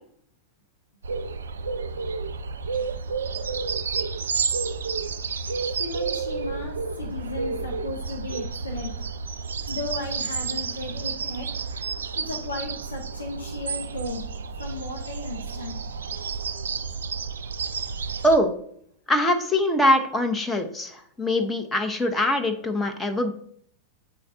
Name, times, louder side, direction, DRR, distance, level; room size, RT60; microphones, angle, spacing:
sound 1, 1.0-18.4, right 5 dB, 65° right, 0.4 m, -31 dB
voice 1, 5.8-9.0 9.7-11.5 12.1-14.3 14.6-15.8, left 2 dB, 75° left, 1 dB, 0.9 m, -35 dB
voice 2, 19.1-23.3, left 1 dB, 15° left, 5 dB, 0.8 m, -23 dB
7.8 x 4.4 x 3.7 m, 0.65 s
figure-of-eight pair, 90°, 0 cm